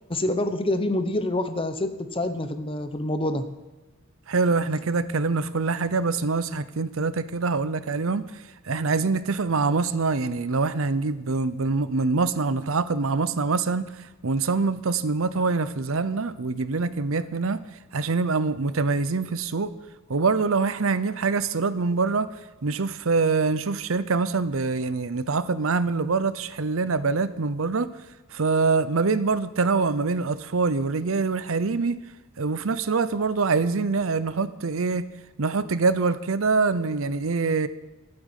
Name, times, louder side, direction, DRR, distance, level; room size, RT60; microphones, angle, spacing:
voice 1, 0.1-3.4, left 1 dB, 25° left, 10 dB, 1.0 m, -26 dB
voice 2, 4.3-8.3 8.7-13.9 14.2-17.6 17.9-19.7 20.1-22.3 22.6-27.9 28.3-32.0 32.4-35.0 35.4-37.7, right 4 dB, 70° right, 15 dB, 0.7 m, -24 dB
13.0 x 8.9 x 8.2 m, 1.2 s
head